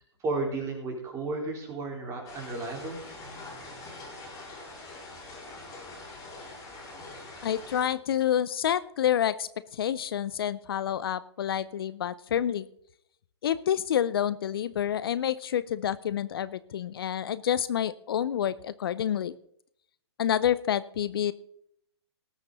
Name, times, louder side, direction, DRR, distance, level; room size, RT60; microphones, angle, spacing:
voice 1, 0.2-3.0, right 3 dB, 20° right, 0 dB, 4.3 m, -33 dB
sound 1, 2.2-7.9, left 2 dB, 25° left, 5.2 m, -44 dB
voice 2, 7.4-12.7 13.4-19.3 20.2-21.3, left 10 dB, 60° left, 17 dB, 0.6 m, -28 dB
19.0 x 8.0 x 4.0 m, 0.69 s
figure-of-eight pair, 120°, 14 cm